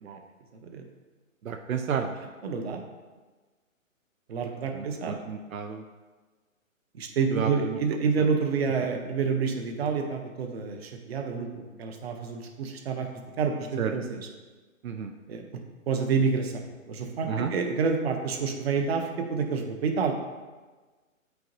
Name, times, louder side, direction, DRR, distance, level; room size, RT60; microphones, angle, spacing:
voice 1, 1.4-2.2 4.7-5.8 7.3-7.8 13.8-13.9 14.8-15.1 17.3-17.5, right 7 dB, 80° right, 4 dB, 0.7 m, -31 dB
voice 2, 2.4-2.8 4.3-5.2 6.9-13.1 13.4-14.3 15.3-15.4 15.9-20.1, right 5 dB, 50° right, 3 dB, 0.9 m, -28 dB
8.3 x 4.6 x 2.6 m, 1.3 s
hypercardioid pair, 150°, 41 cm